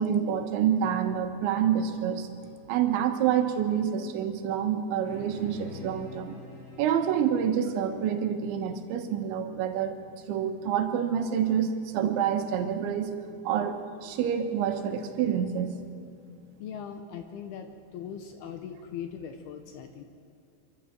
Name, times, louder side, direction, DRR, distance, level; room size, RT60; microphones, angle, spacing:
voice 1, 0.0-2.3 2.7-6.4 6.8-10.0 10.3-13.1 13.5-15.7, right 8 dB, 75° right, 6 dB, 3.5 m, -27 dB
sound 1, 5.0-9.8, left 3 dB, 60° left, 7.9 m, -47 dB
voice 2, 16.6-20.0, left 8 dB, 75° left, 7 dB, 2.3 m, -40 dB
25.5 x 14.0 x 7.5 m, 2.6 s
omnidirectional pair, 5.5 m